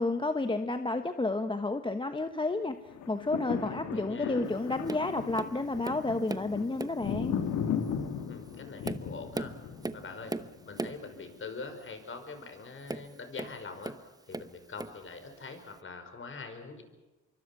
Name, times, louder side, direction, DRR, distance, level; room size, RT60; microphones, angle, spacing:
voice 1, 0.0-2.8 3.1-7.4, left 2 dB, 15° left, 8 dB, 1.2 m, -31 dB
sound 1, 2.9-11.2 11.7-11.8, left 7 dB, 80° left, 2.4 m, -36 dB
voice 2, 3.7-4.4 8.3-9.5 9.9-10.4 10.6-14.0 14.3-16.8, left 4 dB, 40° left, 7 dB, 5.5 m, -43 dB
Tap, 4.9-5.1 5.4-6.5 6.8-7.1 7.8-7.9 8.5-11.1 12.8-14.0 14.3-15.0 15.8-15.9, right 2 dB, 10° right, 1.0 m, -38 dB
25.5 x 24.0 x 6.1 m, 1.1 s
cardioid pair, 90°, 30 cm